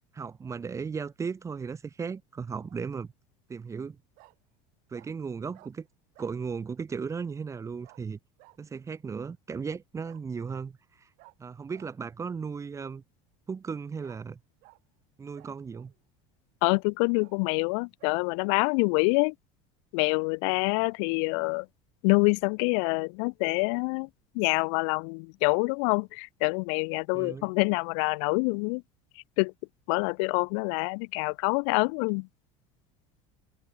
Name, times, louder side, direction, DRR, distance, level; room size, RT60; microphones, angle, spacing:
voice 1, 0.1-3.1 3.5-4.0 4.9-5.9 6.2-8.2 8.6-11.1 11.4-13.0 13.5-14.4 15.2-15.9 27.1-27.5, right 5 dB, 20° right, 0.8 m, -36 dB
Bark, 2.5-2.8 4.2-4.4 4.9-5.1 5.5-5.7 6.1-6.4 7.8-8.0 8.4-8.6 10.0-10.2 11.2-11.3 11.7-11.9 14.0-14.2 14.6-14.8 15.4-16.0 16.5-16.6 17.2-17.4 18.0-18.2 18.6-18.8, right 25 dB, 65° right, 6.2 m, -56 dB
voice 2, 16.6-19.3 19.9-21.7 22.0-24.1 24.3-28.8 29.4-29.5 29.9-32.3, left 39 dB, 75° left, 0.6 m, -26 dB
supercardioid pair, 120°, 15 cm